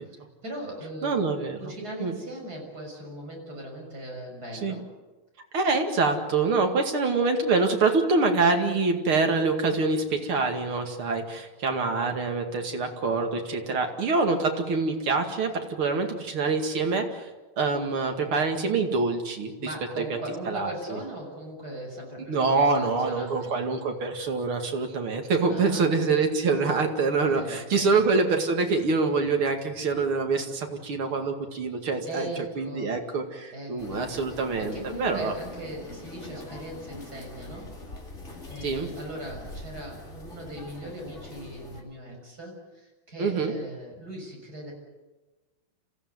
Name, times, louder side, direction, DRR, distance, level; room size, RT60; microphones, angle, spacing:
voice 1, 0.0-1.2 1.6-4.8 19.6-23.5 25.5-25.9 27.3-27.9 32.1-32.9 33.5-34.1 34.6-37.7 38.5-44.7, right 1 dB, 45° right, 0 dB, 6.9 m, -39 dB
voice 2, 1.0-1.6 2.0-2.1 4.6-4.8 5.5-17.3 17.6-19.5 20.0-20.1 20.4-21.0 22.3-32.3 32.6-35.3 38.6-38.9 43.2-43.5, right 4 dB, 80° right, 4 dB, 3.1 m, -25 dB
sound 1, 33.8-41.8, left 2 dB, 35° left, 3.3 m, -43 dB
27.0 x 15.5 x 9.5 m, 1.2 s
omnidirectional pair, 2.3 m